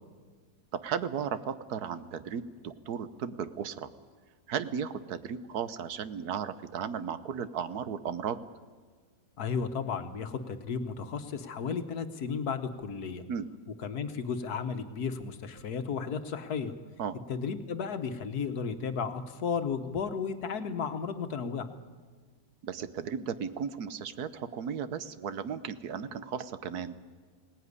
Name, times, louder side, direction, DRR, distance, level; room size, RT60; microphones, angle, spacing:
voice 1, 0.7-3.9 4.5-8.4 13.3-13.5 17.0-17.2 22.6-27.0, right 7 dB, 80° right, 13 dB, 1.4 m, -35 dB
voice 2, 9.4-13.2 13.8-16.7 17.3-21.7, left 6 dB, 75° left, 9 dB, 1.7 m, -34 dB
20.5 x 18.5 x 9.7 m, 1.5 s
omnidirectional pair, 1.6 m